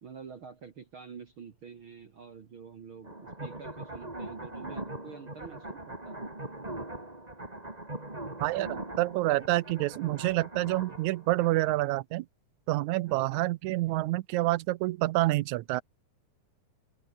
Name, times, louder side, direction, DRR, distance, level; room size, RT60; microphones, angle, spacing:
voice 1, 0.0-6.3 13.1-13.4, right 6 dB, 45° right, 2.0 m, -47 dB
sound 1, 3.0-11.9, right 2 dB, 10° right, 3.1 m, -41 dB
voice 2, 8.4-12.3 12.7-15.8, right 18 dB, 80° right, 1.7 m, -28 dB
open air
omnidirectional pair, 4.0 m